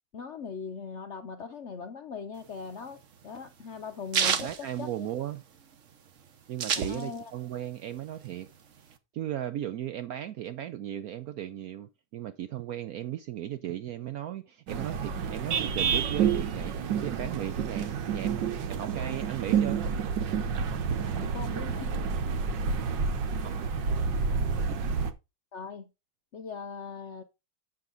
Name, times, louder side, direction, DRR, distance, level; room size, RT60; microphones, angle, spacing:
voice 1, 0.1-5.1 6.8-7.3 21.2-21.9 25.5-25.9 26.3-27.2, left 5 dB, 75° left, 0.6 m, -40 dB
sound 1, 2.4-5.6 5.9-6.0 6.2-7.4 7.8-8.9, right 6 dB, 50° right, 1.1 m, -30 dB
voice 2, 4.4-5.4 6.5-8.5 9.1-19.9 20.7-20.8 22.7-23.0 23.4-23.5 24.7-24.9, right 11 dB, 85° right, 0.7 m, -36 dB
sound 2, 14.7-25.1, right 6 dB, 65° right, 1.5 m, -29 dB
8.2 x 6.6 x 3.9 m
omnidirectional pair, 2.2 m